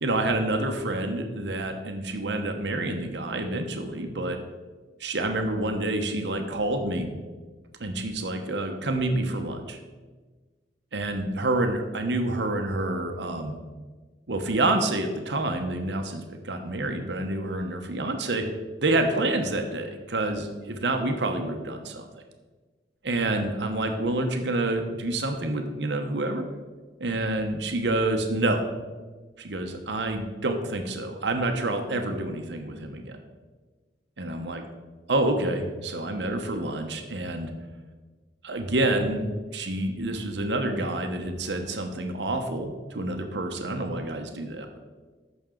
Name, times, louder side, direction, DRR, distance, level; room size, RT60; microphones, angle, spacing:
voice 1, 0.0-4.4 5.0-7.1 7.8-9.8 10.9-13.6 14.3-18.4 18.8-22.0 23.0-26.5 27.0-28.6 29.4-33.2 34.2-34.6 35.1-37.5 38.4-44.8, right 2 dB, 75° right, 4 dB, 1.0 m, -28 dB
14.5 x 6.1 x 3.8 m, 1.3 s
head